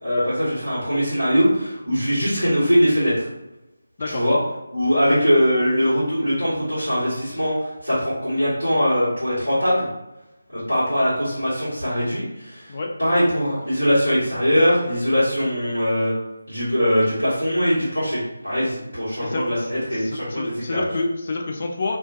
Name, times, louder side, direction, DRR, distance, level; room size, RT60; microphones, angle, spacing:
voice 1, 0.0-3.3 4.0-4.4 4.7-9.9 10.5-12.7 13.0-16.1 16.5-20.9, equal, 85° right, -12 dB, 1.3 m, -21 dB
voice 2, 19.2-22.0, left 2 dB, 40° left, 2 dB, 0.3 m, -28 dB
2.4 x 2.2 x 2.5 m, 0.97 s
figure-of-eight pair, 155°, 0 cm